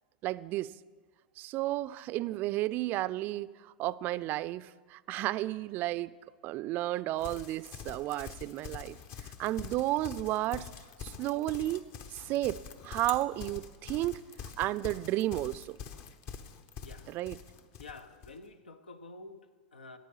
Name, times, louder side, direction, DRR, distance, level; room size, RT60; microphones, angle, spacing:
voice 1, 0.2-0.7 1.4-6.1 6.4-9.0 9.2-10.7 11.0-11.8 12.1-12.6 12.8-14.2 14.6-15.8 17.1-17.4, right 16 dB, 40° right, 0.4 m, -32 dB
Livestock farm animals working animals, 7.2-18.4, left 7 dB, 45° left, 1.0 m, -45 dB
voice 2, 17.8-20.0, left 3 dB, 85° left, 1.0 m, -49 dB
14.5 x 8.9 x 5.5 m
hypercardioid pair, 100°, 5 cm